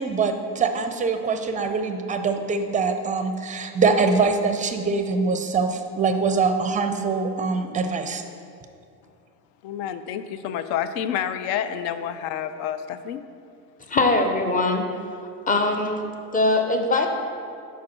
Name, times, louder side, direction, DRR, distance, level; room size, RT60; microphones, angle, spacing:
voice 1, 0.0-8.2, right 4 dB, 15° right, 7 dB, 0.5 m, -23 dB
voice 2, 9.6-13.2, left 9 dB, 60° left, 11 dB, 0.5 m, -29 dB
voice 3, 13.9-14.9 15.5-16.1 16.3-17.1, left 2 dB, 15° left, 4 dB, 0.7 m, -21 dB
4.7 x 4.5 x 6.0 m, 2.4 s
hypercardioid pair, 70°, 48 cm